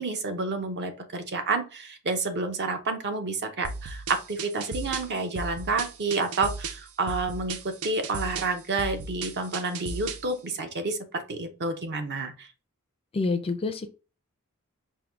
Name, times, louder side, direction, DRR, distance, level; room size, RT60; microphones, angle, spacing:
voice 1, 0.0-12.5, right 3 dB, 50° right, 6 dB, 0.7 m, -29 dB
sound 1, 3.6-10.3, right 4 dB, 85° right, 0.5 m, -36 dB
voice 2, 13.1-13.9, left 3 dB, 25° left, 7 dB, 0.4 m, -27 dB
4.6 x 2.2 x 3.4 m, 0.33 s
head